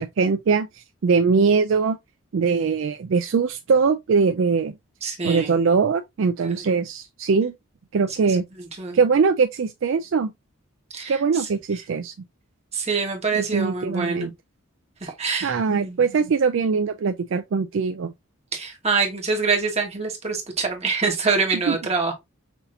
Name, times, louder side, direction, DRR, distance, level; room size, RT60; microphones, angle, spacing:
voice 1, 0.0-2.0 2.3-4.7 5.2-7.5 7.9-8.4 8.9-10.3 11.1-12.1 13.3-14.3 15.0-15.1 15.4-18.1 21.7-21.8, right 5 dB, 60° right, 0.4 m, -21 dB
voice 2, 5.0-5.6 6.4-6.8 8.8-9.0 10.9-11.2 12.7-14.3 15.0-16.0 18.5-22.1, right 4 dB, 30° right, 1.3 m, -25 dB
6.0 x 2.8 x 2.5 m
head